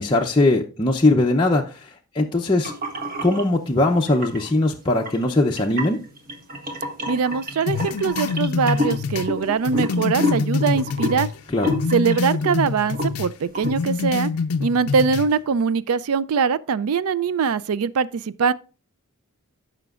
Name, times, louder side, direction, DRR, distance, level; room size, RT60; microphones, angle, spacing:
voice 1, 0.0-2.7 3.2-6.0 11.5-11.7, left 2 dB, 20° left, 0.6 m, -20 dB
sound 1, 2.6-3.4 4.1-4.5 5.0-12.5 12.8-13.2 13.5-13.8, left 1 dB, 40° right, 1.5 m, -29 dB
voice 2, 7.1-11.3 11.9-14.3 14.6-18.5, right 5 dB, 70° right, 0.4 m, -22 dB
sound 2, 7.7-11.4 11.7-13.3 13.6-15.3, left 4 dB, 75° left, 0.4 m, -25 dB
14.5 x 5.8 x 2.4 m
head